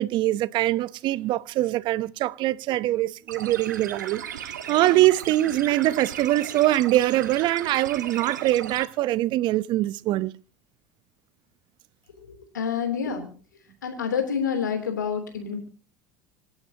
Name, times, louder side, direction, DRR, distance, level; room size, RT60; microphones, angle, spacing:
voice 1, 0.0-10.3, right 15 dB, 55° right, 0.9 m, -23 dB
sound 1, 3.3-8.9, right 9 dB, 85° right, 1.7 m, -36 dB
voice 2, 12.2-13.3 13.8-15.6, left 7 dB, 85° left, 3.3 m, -28 dB
26.5 x 11.5 x 2.9 m
hypercardioid pair, 75°, 10 cm